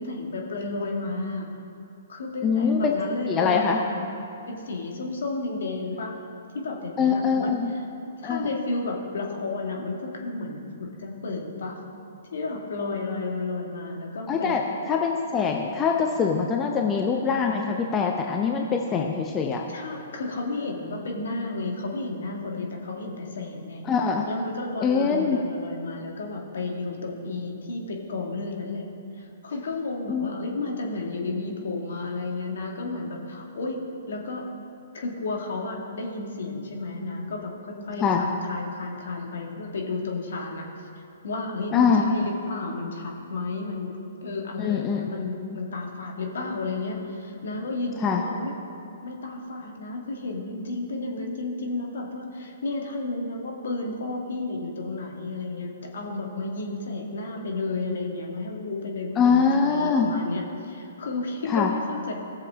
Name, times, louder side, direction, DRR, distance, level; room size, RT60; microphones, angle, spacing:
voice 1, 0.0-1.5 2.1-4.1 4.5-6.1 6.5-7.7 8.0-11.8 12.3-14.6 19.7-23.8 24.3-28.9 29.1-33.8 34.1-34.4 34.9-40.7 41.2-48.5 49.0-62.1, left 3 dB, 65° left, 0 dB, 1.8 m, -32 dB
voice 2, 2.4-3.0 3.3-3.8 7.0-7.7 8.2-8.4 14.3-19.6 23.9-24.2 24.8-25.4 30.1-30.3 38.0-38.2 41.7-42.0 44.6-45.0 45.4-45.6 48.0-48.2 59.2-60.1 61.5-61.7, left 6 dB, 20° left, 2 dB, 0.7 m, -23 dB
17.5 x 6.9 x 3.6 m, 2.6 s
figure-of-eight pair, 125°, 0 cm